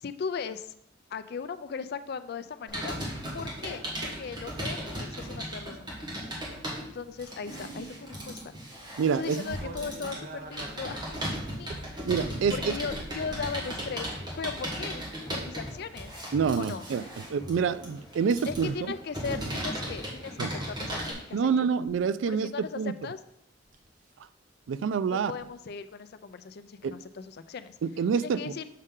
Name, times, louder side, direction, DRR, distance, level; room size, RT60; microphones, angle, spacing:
voice 1, 0.0-0.7 1.1-3.0 3.3-6.1 6.8-8.5 9.2-11.8 12.5-14.1 14.4-15.0 15.3-16.1 16.6-16.9 18.4-21.5 22.3-23.2 25.1-27.7 28.2-28.7, left 5 dB, 55° left, 12 dB, 0.4 m, -38 dB
Computer keyboard, 2.7-21.1, equal, 25° right, 1.7 m, -37 dB
voice 2, 9.0-9.4 12.1-12.7 16.3-18.9 20.4-20.5 21.3-22.9 24.7-25.3 26.8-26.9 27.8-28.5, right 6 dB, 80° right, 15 dB, 0.3 m, -27 dB
sound 1, 9.5-13.6 14.3-14.6 16.4-16.8 18.5-18.7 19.2-19.5 20.0-20.2 21.7-22.0 23.7-23.9 25.4-25.5 27.0-27.1 27.8-27.9, right 1 dB, 45° right, 0.8 m, -42 dB
sound 2, 13.1-21.6, equal, 20° left, 1.2 m, -46 dB
6.5 x 5.4 x 3.7 m, 0.75 s
head